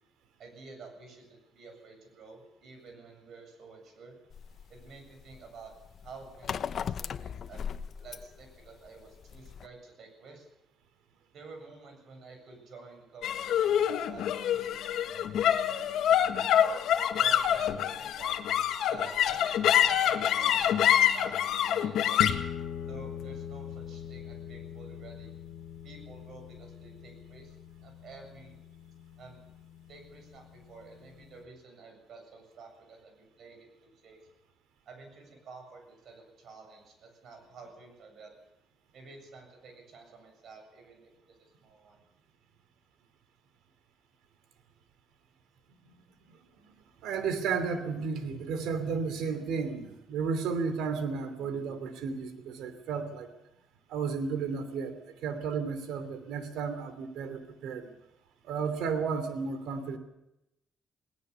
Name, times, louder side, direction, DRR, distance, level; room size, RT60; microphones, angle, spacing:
voice 1, 0.4-4.2 4.7-5.7 6.0-7.7 8.0-10.5 11.3-16.6 17.2-18.4 18.9-22.2 22.9-25.3 25.8-28.6 29.2-29.4 29.9-34.2 34.9-38.3 38.9-41.1 41.6-42.0, right 4 dB, 65° right, 5 dB, 7.7 m, -50 dB
sound 1, 4.3-9.7, left 7 dB, 60° left, 0.8 m, -38 dB
sound 2, 13.2-29.8, left 10 dB, 80° left, 1.5 m, -28 dB
voice 2, 47.0-53.3 53.9-57.9 58.4-60.0, right 5 dB, 90° right, 10 dB, 2.9 m, -33 dB
19.5 x 19.5 x 7.0 m, 0.89 s
cardioid pair, 90°, 0 cm